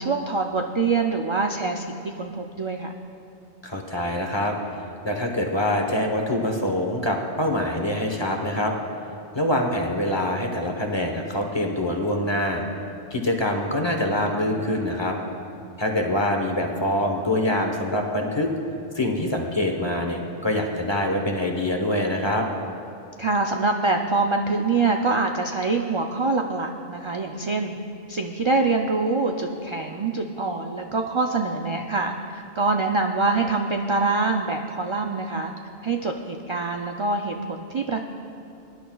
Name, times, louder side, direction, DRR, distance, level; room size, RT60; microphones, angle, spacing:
voice 1, 0.0-2.9 23.2-27.7 28.1-35.5 35.8-38.0, right 3 dB, 50° right, 3 dB, 0.3 m, -25 dB
voice 2, 3.6-4.5 5.0-8.7 9.3-12.6 13.1-15.2 15.8-18.5 18.9-22.5, left 1 dB, 25° left, 2 dB, 0.9 m, -25 dB
23.0 x 10.5 x 2.3 m, 2.7 s
omnidirectional pair, 1.2 m